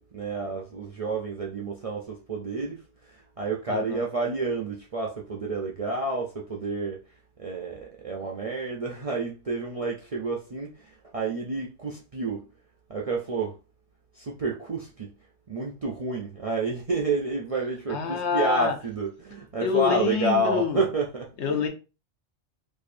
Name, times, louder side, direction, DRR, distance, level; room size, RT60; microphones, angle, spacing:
voice 1, 0.0-12.4 12.9-13.6 14.1-15.1 15.5-21.6, right 3 dB, 50° right, 0.4 m, -30 dB
voice 2, 3.7-4.0 17.9-18.7 19.6-20.8 21.4-21.7, left 7 dB, 75° left, 1.1 m, -26 dB
4.4 x 2.7 x 2.5 m
omnidirectional pair, 1.2 m